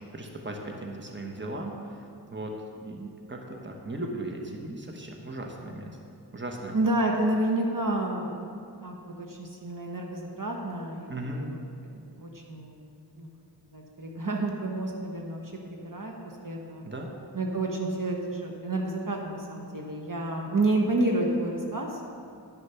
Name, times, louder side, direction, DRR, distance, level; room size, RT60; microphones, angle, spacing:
voice 1, 0.1-2.5 2.8-6.0 6.3-6.8 11.1-11.4 16.8-17.1, right 1 dB, 25° right, 1 dB, 1.2 m, -37 dB
voice 2, 6.7-11.6 11.9-12.9 13.2-13.3 13.7-15.5 15.8-16.1 16.4-16.8 17.3-22.0, right 2 dB, 50° right, 0 dB, 1.2 m, -30 dB
10.5 x 6.6 x 5.7 m, 2.4 s
wide cardioid pair, 45°, 42 cm